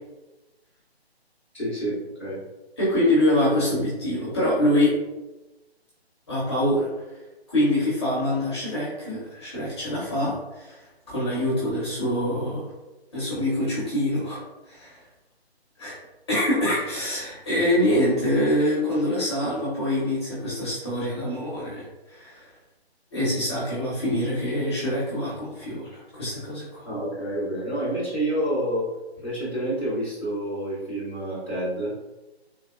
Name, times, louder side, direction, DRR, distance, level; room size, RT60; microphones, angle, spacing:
voice 1, 1.5-2.4 26.8-28.9 29.2-31.9, right 1 dB, 10° right, -14 dB, 1.0 m, -28 dB
voice 2, 2.8-4.9 6.3-6.9 7.5-10.8 11.1-12.7 13.1-14.4 14.7-14.9 15.8-16.0 16.3-22.5 23.1-26.9, left 1 dB, 25° left, -8 dB, 0.8 m, -25 dB
3.6 x 2.8 x 2.4 m, 1.1 s
figure-of-eight pair, 160°, 32 cm